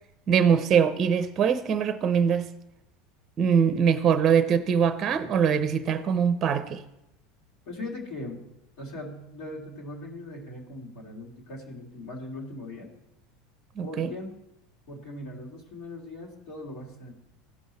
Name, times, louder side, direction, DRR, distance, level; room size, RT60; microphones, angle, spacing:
voice 1, 0.3-2.5 3.4-6.8 13.8-14.1, right 7 dB, 40° right, 12 dB, 0.6 m, -23 dB
voice 2, 7.7-8.4 8.8-12.9 13.8-14.4 14.9-17.1, left 2 dB, 65° left, -3 dB, 2.5 m, -39 dB
15.5 x 5.6 x 4.2 m, 0.86 s
hypercardioid pair, 85°, 0 cm